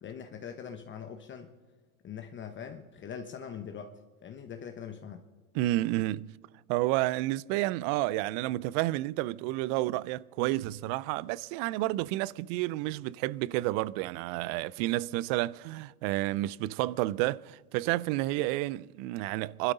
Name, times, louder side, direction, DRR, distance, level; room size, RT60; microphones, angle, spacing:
voice 1, 0.0-1.5 2.0-3.9 4.2-5.2, left 7 dB, 25° left, 1.1 m, -42 dB
voice 2, 5.5-6.3 6.7-19.7, right 17 dB, 45° right, 0.5 m, -30 dB
27.0 x 12.0 x 4.0 m
hypercardioid pair, 100°, 43 cm